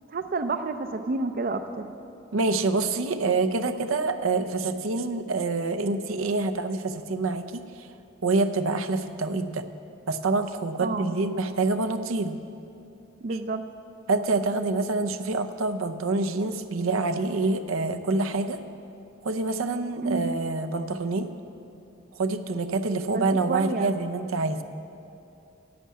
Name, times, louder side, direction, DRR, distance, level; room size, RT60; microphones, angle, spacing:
voice 1, 0.1-1.9 10.8-11.1 13.2-13.6 20.0-20.3 23.1-23.9, right 3 dB, 45° right, 8 dB, 0.5 m, -29 dB
voice 2, 2.3-7.6 8.2-9.6 10.1-12.4 14.1-18.6 19.2-21.3 22.2-24.6, right 3 dB, 85° right, 8 dB, 0.7 m, -26 dB
11.0 x 8.5 x 8.4 m, 2.7 s
head